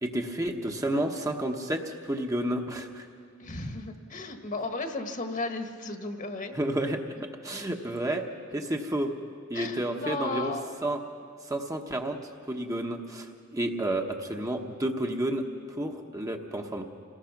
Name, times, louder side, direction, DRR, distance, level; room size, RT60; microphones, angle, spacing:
voice 1, 0.0-3.1 6.5-8.2 8.5-9.1 9.5-10.5 10.8-11.0 11.5-12.2 12.5-16.8, right 1 dB, 15° right, 3 dB, 1.1 m, -31 dB
voice 2, 3.4-6.5 9.5-10.7, left 2 dB, 40° left, 6 dB, 1.5 m, -34 dB
27.5 x 19.0 x 6.0 m, 2.2 s
head